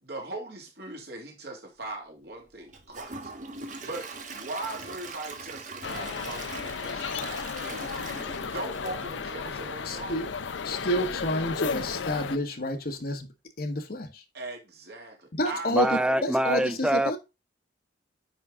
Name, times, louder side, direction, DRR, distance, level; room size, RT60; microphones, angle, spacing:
voice 1, 0.0-3.3 3.6-8.1 8.4-10.3 14.3-16.5, right 2 dB, 60° right, 2.3 m, -40 dB
Gurgling / Toilet flush / Trickle dribble, 2.7-9.7 10.2-10.3 10.7-10.8, right 3 dB, 40° right, 1.3 m, -41 dB
sound 1, 5.8-12.4, left 5 dB, 80° left, 0.6 m, -34 dB
voice 2, 9.8-10.3 10.6-13.3 13.6-14.2 15.4-17.2, left 1 dB, 50° left, 1.1 m, -29 dB
voice 3, 15.7-17.2, right 1 dB, 5° right, 0.3 m, -25 dB
9.8 x 4.0 x 3.6 m
head